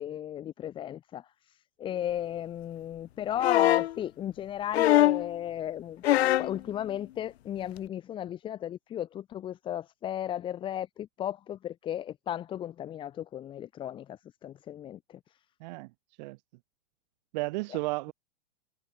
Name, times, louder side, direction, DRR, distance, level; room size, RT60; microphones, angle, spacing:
voice 1, 0.0-15.2, left 11 dB, 15° left, 1.0 m, -35 dB
sound 1, 3.4-3.9 4.7-5.3 6.0-6.6 7.8-7.9, left 14 dB, 75° left, 0.8 m, -22 dB
voice 2, 17.3-18.1, right 23 dB, 40° right, 2.5 m, -33 dB
supercardioid pair, 160°, 32 cm